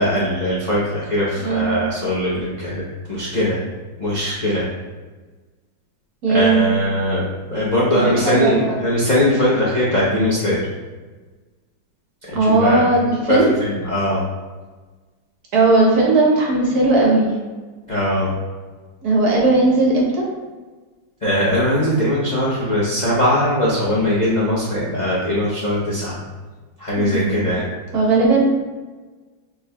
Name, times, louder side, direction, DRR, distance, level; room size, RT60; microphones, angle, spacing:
voice 1, 0.0-2.8 3.1-3.6 4.0-4.7 6.3-10.6 12.3-12.8 13.3-14.2 17.9-18.3 21.2-26.2 26.8-27.6, left 1 dB, 85° left, -8 dB, 0.4 m, -20 dB
voice 2, 1.4-1.8 6.2-6.6 7.9-8.8 12.3-13.5 15.5-17.3 19.0-20.2 27.0-27.4 27.9-28.4, right 2 dB, 55° right, -2 dB, 1.3 m, -17 dB
6.2 x 3.2 x 2.2 m, 1.3 s
omnidirectional pair, 2.2 m